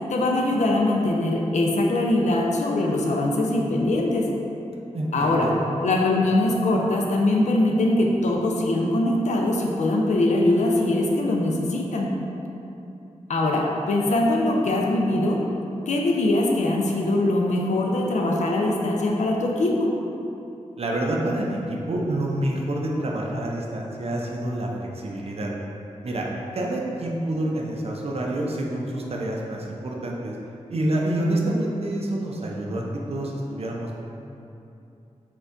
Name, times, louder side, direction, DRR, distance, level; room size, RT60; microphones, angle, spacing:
voice 1, 0.1-4.3 5.1-5.5 5.8-12.1 13.3-15.4 15.9-19.9, left 1 dB, 70° left, 0 dB, 0.4 m, -22 dB
voice 2, 4.9-5.5 20.8-25.5 26.0-26.2 26.5-30.4 30.7-32.8 33.1-33.9, right 1 dB, 55° right, -2 dB, 0.5 m, -27 dB
4.3 x 2.3 x 2.5 m, 2.8 s
cardioid pair, 55°, 13 cm